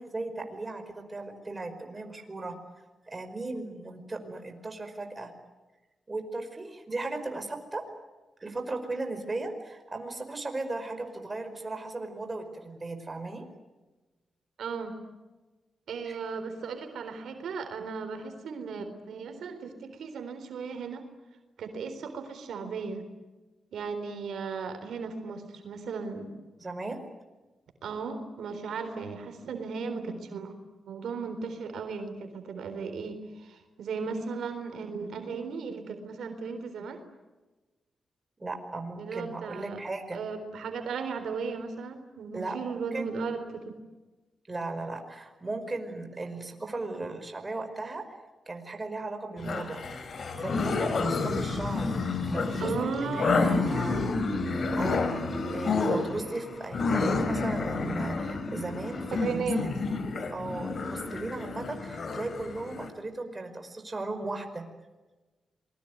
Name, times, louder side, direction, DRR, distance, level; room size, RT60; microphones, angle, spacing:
voice 1, 0.0-2.6 3.0-5.3 6.1-7.8 8.4-13.5 16.0-16.2 26.6-27.0 38.4-40.2 42.3-42.6 42.9-43.1 44.5-48.0 48.5-49.8 50.1-52.0 52.3-52.7 53.0-54.1 54.7-55.1 55.5-59.8 60.3-64.7, right 2 dB, 25° right, 6 dB, 5.1 m, -37 dB
voice 2, 14.6-14.9 15.9-21.0 21.6-23.1 23.7-26.3 27.8-30.5 30.9-37.0 39.0-39.8 40.1-43.7 52.6-53.6 59.1-59.6, right 5 dB, 85° right, 7 dB, 3.7 m, -36 dB
sound 1, 49.4-62.9, left 3 dB, 55° left, 3.6 m, -30 dB
27.0 x 21.5 x 9.4 m, 1.2 s
cardioid pair, 85°, 0 cm